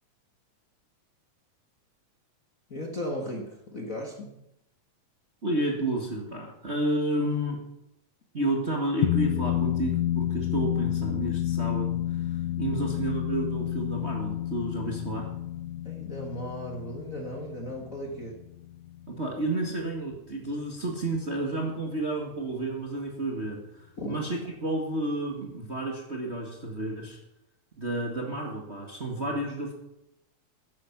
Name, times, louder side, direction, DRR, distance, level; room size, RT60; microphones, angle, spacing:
voice 1, 2.7-4.3 12.6-12.8 15.8-18.4 24.0-24.2, equal, 35° left, 1 dB, 1.6 m, -36 dB
voice 2, 5.4-7.6 8.3-12.2 12.6-15.3 19.1-27.2 27.8-29.7, right 2 dB, 30° right, 1 dB, 1.6 m, -31 dB
sound 1, 9.0-19.7, left 13 dB, 75° left, 1.6 m, -30 dB
14.5 x 10.5 x 6.0 m, 0.85 s
omnidirectional pair, 3.4 m